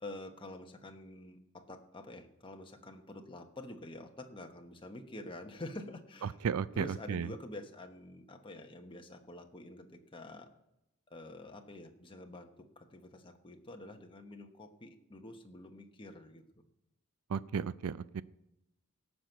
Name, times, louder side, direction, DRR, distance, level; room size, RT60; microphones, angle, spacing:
voice 1, 0.0-6.4 6.7-10.5 11.1-16.4, left 1 dB, 25° left, 4 dB, 1.1 m, -48 dB
voice 2, 6.4-7.3 17.3-18.2, right 6 dB, 85° right, 17 dB, 0.4 m, -34 dB
17.0 x 6.1 x 8.0 m, 0.86 s
head